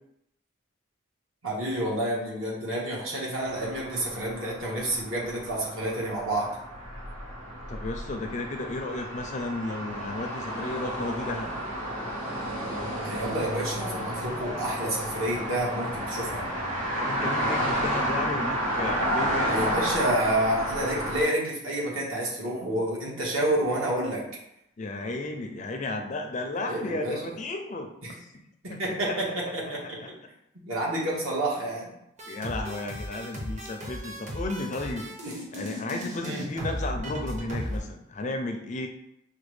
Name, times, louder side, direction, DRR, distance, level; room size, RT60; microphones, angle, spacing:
voice 1, 1.4-6.5 13.0-16.4 19.5-24.2 26.7-27.4 28.0-28.1 28.6-30.0 30.7-31.9 36.2-36.4, right 1 dB, 70° right, -4 dB, 1.4 m, -29 dB
sound 1, 3.4-21.2, equal, 90° right, 1.2 m, -31 dB
voice 2, 7.7-11.5 16.9-19.7 24.8-27.9 28.2-28.3 28.7-29.0 30.0-30.1 32.3-38.9, left 2 dB, 35° left, 4 dB, 0.4 m, -33 dB
sound 2, 32.2-37.8, equal, 35° right, 0.7 m, -36 dB
5.7 x 2.3 x 3.1 m, 0.80 s
head